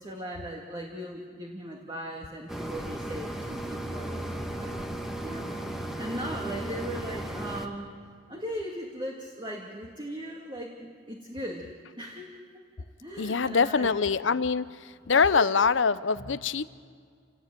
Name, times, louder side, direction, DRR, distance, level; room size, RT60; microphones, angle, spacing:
voice 1, 0.0-4.8 5.2-7.9 8.3-11.7 12.0-12.4 12.8-14.5 15.1-15.7 16.2-16.3, equal, 25° right, 0 dB, 2.2 m, -38 dB
sound 1, 2.5-7.7, right 1 dB, ahead, 1.5 m, -35 dB
voice 2, 13.2-14.7 15.1-16.6, left 5 dB, 70° left, 15 dB, 0.7 m, -24 dB
29.0 x 18.0 x 9.2 m, 2.1 s
head